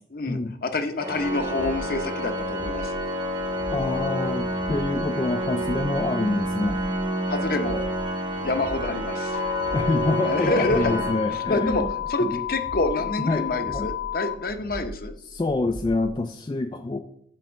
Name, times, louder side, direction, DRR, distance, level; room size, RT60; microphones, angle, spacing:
voice 1, 0.1-2.9 7.3-7.8 8.4-9.4 10.2-11.0 11.3-11.8 12.1-15.1, left 2 dB, 55° left, 8 dB, 0.7 m, -27 dB
Organ, 1.0-12.0, equal, 25° right, 1.0 m, -29 dB
sound 1, 1.2-16.1, right 1 dB, 50° right, 0.5 m, -41 dB
voice 2, 3.7-6.8 9.7-11.9 12.2-12.4 13.3-13.5 13.7-13.9 15.3-17.0, left 2 dB, 25° left, 6 dB, 0.3 m, -26 dB
sound 2, 9.3-14.3, left 13 dB, 85° left, 0.6 m, -31 dB
7.9 x 3.5 x 6.2 m, 0.68 s
head